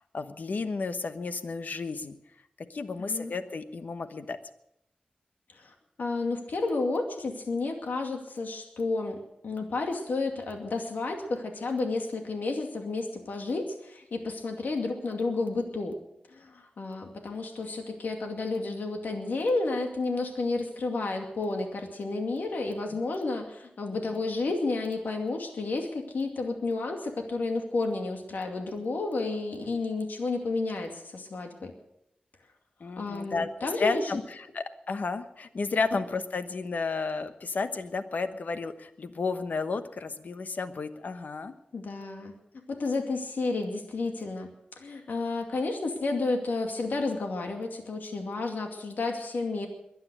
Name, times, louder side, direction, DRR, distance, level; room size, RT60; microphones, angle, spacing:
voice 1, 0.1-2.2 2.7-4.4 22.9-23.0 32.8-41.5, left 4 dB, 65° left, 9 dB, 1.1 m, -32 dB
voice 2, 3.0-3.3 5.6-9.2 9.4-15.9 16.3-31.7 33.0-34.1 41.7-42.3 42.7-44.5 44.8-49.7, left 3 dB, 90° left, 3 dB, 2.4 m, -31 dB
22.5 x 9.7 x 6.3 m, 0.78 s
wide cardioid pair, 120°, 3 cm